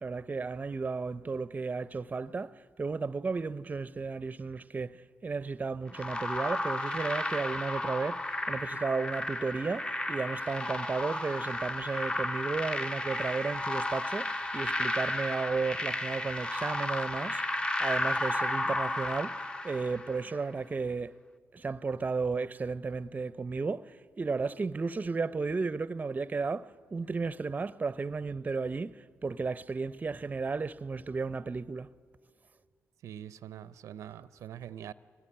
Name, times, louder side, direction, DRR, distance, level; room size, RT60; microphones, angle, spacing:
voice 1, 0.0-21.2 21.5-31.9, right 4 dB, 30° right, 0.6 m, -34 dB
sound 1, 5.9-20.3, left 1 dB, 20° left, 0.7 m, -33 dB
voice 2, 33.0-34.9, right 10 dB, 80° right, 0.6 m, -44 dB
24.0 x 19.0 x 9.9 m
cardioid pair, 70°, 5 cm